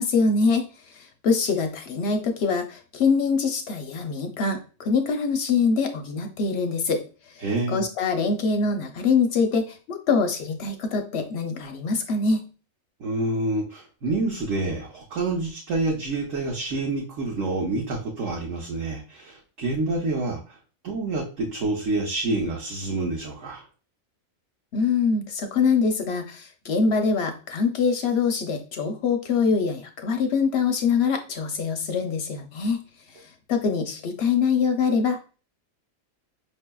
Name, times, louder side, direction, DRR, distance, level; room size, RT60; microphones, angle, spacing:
voice 1, 0.0-7.0 7.7-12.5 24.7-32.8 33.5-35.3, left 5 dB, 65° left, 5 dB, 0.7 m, -24 dB
voice 2, 7.4-7.8 13.0-20.6 20.8-23.6, right 2 dB, 65° right, -1 dB, 1.0 m, -27 dB
5.2 x 2.7 x 2.2 m, 0.36 s
omnidirectional pair, 1.4 m